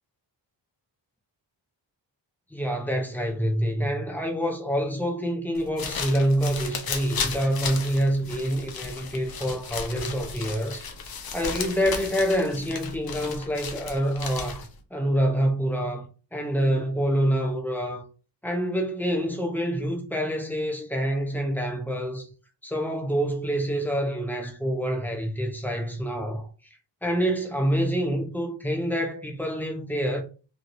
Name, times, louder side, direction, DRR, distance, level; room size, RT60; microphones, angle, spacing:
voice 1, 2.5-10.8 11.3-16.1 16.3-18.1 18.4-22.3 22.6-26.5 27.0-30.2, equal, 5° left, 0.7 m, -26 dB
sound 1, 5.5-14.8, left 5 dB, 55° left, 0.7 m, -35 dB
3.1 x 2.8 x 2.6 m
wide cardioid pair, 80°, 44 cm